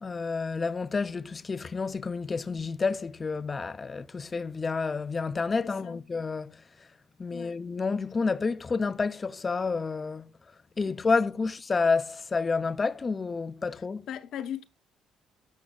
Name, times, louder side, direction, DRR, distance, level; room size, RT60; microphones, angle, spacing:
voice 1, 0.0-6.6 7.2-10.3 10.8-14.1, left 4 dB, 25° left, 0.4 m, -29 dB
voice 2, 5.6-6.0 7.3-7.6 10.9-11.0 13.7-14.6, left 9 dB, 65° left, 0.8 m, -39 dB
12.5 x 5.9 x 2.3 m
cardioid pair, 145°, 0 cm